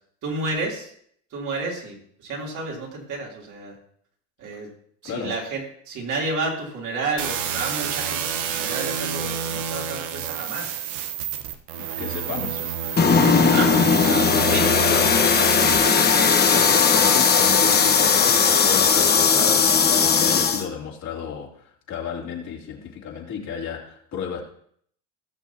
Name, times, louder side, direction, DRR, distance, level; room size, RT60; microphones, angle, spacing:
voice 1, 0.2-0.9 1.3-3.7 4.4-4.7 5.0-10.7 12.4-12.5 13.2-14.8 15.5-16.8, right 3 dB, 55° right, -2 dB, 3.2 m, -31 dB
voice 2, 5.0-5.3 12.0-12.6 14.9-15.2 15.5-24.4, left 7 dB, 50° left, -2 dB, 2.8 m, -33 dB
sound 1, 7.2-15.8, right 8 dB, 85° right, 1.1 m, -29 dB
sound 2, 13.0-20.7, left 6 dB, 25° left, 1.2 m, -18 dB
18.5 x 6.3 x 2.8 m, 0.65 s
supercardioid pair, 100°, 36 cm